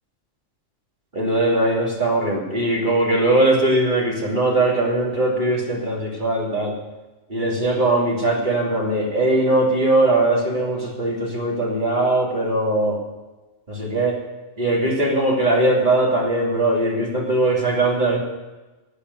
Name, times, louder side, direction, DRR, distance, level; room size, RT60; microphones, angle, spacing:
voice 1, 1.1-6.7 7.3-13.0 13.7-14.2 14.6-18.2, right 2 dB, 40° right, -3 dB, 3.0 m, -20 dB
12.0 x 8.4 x 9.4 m, 1.1 s
omnidirectional pair, 1.3 m